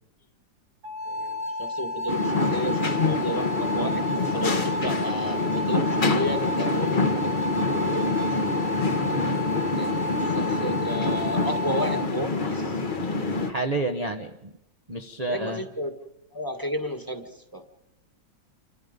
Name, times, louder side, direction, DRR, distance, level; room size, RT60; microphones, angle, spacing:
sound 1, 0.8-12.1, left 1 dB, 45° right, 1.6 m, -31 dB
voice 1, 1.1-7.1 7.5-8.4 9.8-12.8 15.3-15.9 16.3-17.6, equal, 10° left, 6 dB, 1.6 m, -33 dB
sound 2, 2.1-13.5, left 3 dB, 30° left, 1.3 m, -26 dB
voice 2, 13.5-14.5 14.9-15.6, right 2 dB, 25° right, 3 dB, 1.0 m, -29 dB
28.0 x 24.5 x 5.3 m, 0.89 s
omnidirectional pair, 2.0 m